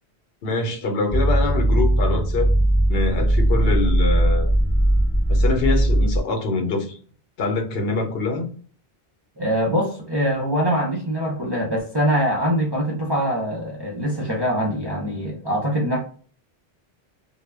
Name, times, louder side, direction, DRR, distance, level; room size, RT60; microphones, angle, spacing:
voice 1, 0.4-2.5 2.9-4.5 5.3-7.0 7.4-8.5, left 3 dB, 70° left, 0.9 m, -24 dB
sound 1, 1.1-6.2, right 1 dB, 35° left, 0.4 m, -19 dB
voice 2, 9.4-16.0, equal, 35° right, 0.4 m, -23 dB
2.2 x 2.0 x 3.3 m
omnidirectional pair, 1.1 m